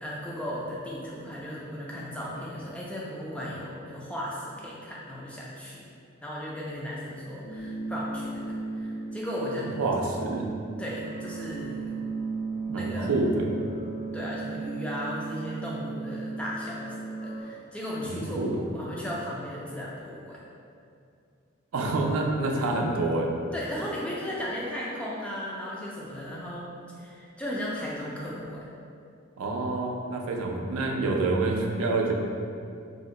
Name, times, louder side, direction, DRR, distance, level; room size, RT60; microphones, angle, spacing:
voice 1, 0.0-5.8 6.2-9.7 10.8-11.9 12.7-13.1 14.1-20.4 23.5-26.7 27.0-28.6, equal, 5° left, -5 dB, 0.3 m, -36 dB
sound 1, 7.4-17.4, right 4 dB, 60° left, 1.2 m, -36 dB
voice 2, 9.6-10.5 12.7-13.5 18.0-18.6 21.7-23.3 29.4-32.1, right 2 dB, 90° right, 0 dB, 0.4 m, -27 dB
2.6 x 2.1 x 3.7 m, 2.5 s
head